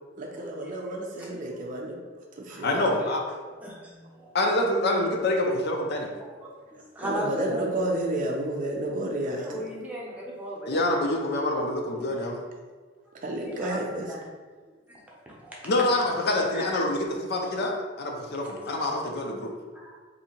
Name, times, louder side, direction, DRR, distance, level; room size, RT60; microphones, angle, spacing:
voice 1, 0.2-2.0 2.4-3.0 7.0-9.6 13.2-14.1, right 1 dB, 45° right, 0 dB, 0.5 m, -31 dB
voice 2, 2.6-3.2 4.3-6.1 10.7-12.4 15.6-19.5, left 1 dB, 55° left, 1 dB, 0.5 m, -26 dB
voice 3, 3.6-4.3 6.2-7.7 9.3-11.0 13.4-14.3 14.9-15.6 16.5-16.7 18.8-18.9 19.8-20.0, right 1 dB, 10° right, -5 dB, 0.7 m, -37 dB
2.7 x 2.7 x 4.3 m, 1.4 s
head